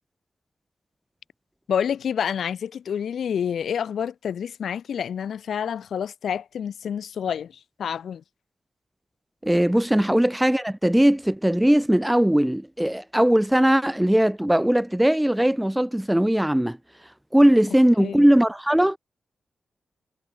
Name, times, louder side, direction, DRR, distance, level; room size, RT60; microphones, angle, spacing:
voice 1, 1.7-8.2 18.0-18.2, left 8 dB, 80° left, 2.9 m, -28 dB
voice 2, 9.4-16.8 17.3-19.0, right 1 dB, 5° right, 1.8 m, -19 dB
wide cardioid pair, 180°, 0 cm